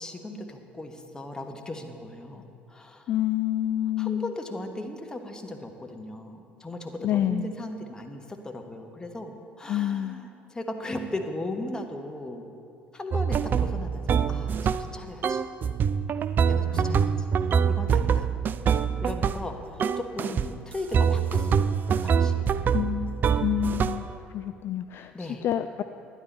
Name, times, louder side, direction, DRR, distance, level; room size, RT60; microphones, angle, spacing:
voice 1, 0.0-3.1 4.0-12.4 12.9-15.4 16.5-17.3 17.7-18.3 19.0-22.5 25.1-25.4, left 1 dB, 15° left, 4 dB, 1.1 m, -37 dB
voice 2, 3.1-4.3 7.0-7.5 9.7-10.2 16.7-17.3 22.7-25.8, left 12 dB, 45° left, 9 dB, 0.3 m, -28 dB
sound 1, 13.1-15.0 15.2-19.5 19.8-20.5 20.9-24.1, right 7 dB, 35° right, 0.4 m, -25 dB
12.0 x 10.0 x 4.3 m, 2.5 s
figure-of-eight pair, 55°, 6 cm